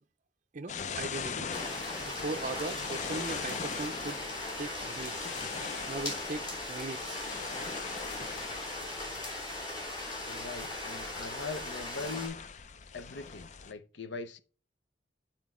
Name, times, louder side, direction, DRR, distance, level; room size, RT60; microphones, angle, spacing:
voice 1, 0.5-1.5 2.0-4.2 4.6-5.3 5.9-7.2, right 3 dB, 40° right, 0.5 m, -39 dB
sound 1, 0.7-13.7, left 6 dB, 40° left, 0.4 m, -41 dB
sound 2, 1.5-12.3, left 1 dB, 25° left, 3.0 m, -39 dB
voice 2, 10.3-12.4 12.9-14.4, left 4 dB, 75° left, 0.7 m, -41 dB
9.4 x 4.4 x 3.6 m
head